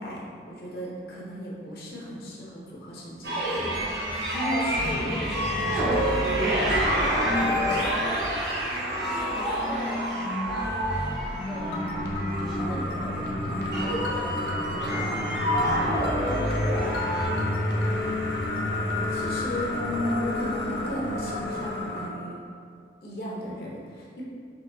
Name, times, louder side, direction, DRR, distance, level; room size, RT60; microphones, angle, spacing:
voice 1, 0.0-3.7 4.3-7.8 19.1-22.4 23.0-24.2, equal, 55° left, -5 dB, 0.9 m, -35 dB
sound 1, 3.2-17.3, equal, 70° right, 1.2 m, -27 dB
sound 2, 4.8-12.0 12.5-13.2, right 1 dB, 45° right, 1.3 m, -41 dB
voice 2, 8.5-17.0 17.3-17.9, equal, 25° right, -10 dB, 0.6 m, -42 dB
sound 3, 11.5-22.1, left 1 dB, 80° left, 0.7 m, -30 dB
5.6 x 3.2 x 2.7 m, 2.2 s
head